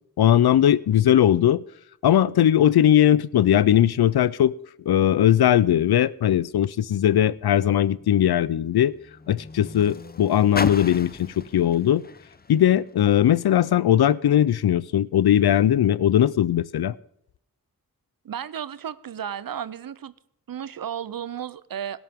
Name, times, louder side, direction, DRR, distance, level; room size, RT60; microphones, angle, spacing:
voice 1, 0.2-1.6 2.0-4.5 4.9-8.9 9.3-12.0 12.5-16.9, left 11 dB, 90° left, 0.6 m, -19 dB
Car, 7.0-13.5 14.3-14.4, left 4 dB, 25° left, 0.6 m, -37 dB
voice 2, 18.2-20.1 20.5-22.0, right 9 dB, 65° right, 0.7 m, -33 dB
17.5 x 11.5 x 3.6 m
wide cardioid pair, 105°, 37 cm